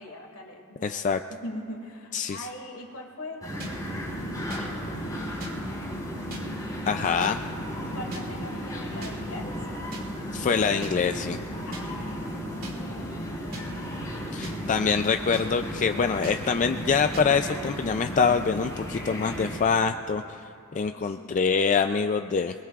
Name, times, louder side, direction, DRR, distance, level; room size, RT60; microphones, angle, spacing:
voice 1, 0.0-3.5 7.9-9.5 11.6-13.7 21.0-21.3, left 1 dB, 70° left, 1 dB, 2.3 m, -41 dB
voice 2, 0.8-1.2 2.1-2.5 4.6-4.7 6.9-7.5 10.3-11.4 14.3-20.4 20.7-22.5, left 5 dB, 35° left, 7 dB, 0.3 m, -25 dB
sound 1, 3.4-19.6, equal, 15° left, 4.3 m, -35 dB
sound 2, 3.6-3.7 4.5-4.6 5.4-5.5 6.3-6.4 7.2-7.3 8.1-8.2 9.0-9.1 9.9-10.0 10.8-10.9 11.7-11.8 12.6-12.7 13.5-13.6 14.4-14.6 15.3-15.5 16.2-16.4 17.1-17.3, right 1 dB, 40° right, 2.4 m, -38 dB
28.0 x 21.5 x 2.4 m, 2.7 s
head